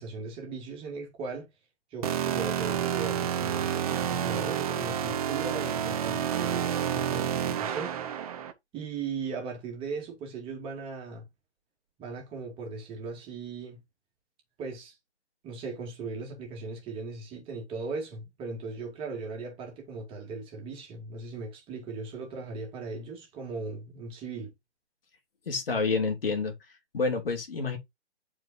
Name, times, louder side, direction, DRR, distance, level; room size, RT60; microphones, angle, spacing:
voice 1, 0.0-1.5 1.9-8.0 8.7-11.3 12.0-13.8 14.6-15.0 15.4-24.5, right 4 dB, 15° right, 2.6 m, -38 dB
sound 1, 2.0-8.5, right 9 dB, 35° right, 1.1 m, -29 dB
voice 2, 25.5-26.6 26.9-27.8, left 4 dB, 55° left, 2.7 m, -28 dB
10.5 x 4.8 x 2.7 m
figure-of-eight pair, 135°, 34 cm